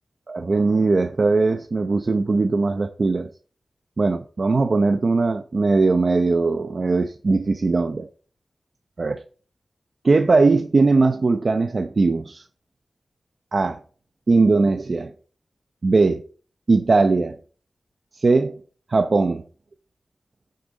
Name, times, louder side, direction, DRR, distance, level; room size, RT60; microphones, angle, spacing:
voice 1, 0.3-3.3 4.0-8.1 9.0-9.2 10.0-12.4 13.5-13.8 14.3-15.1 15.8-16.2 16.7-17.3 18.1-18.5 18.9-19.4, right 3 dB, 50° right, 0.8 m, -19 dB
12.0 x 6.7 x 4.1 m
wide cardioid pair, 100°, 0 cm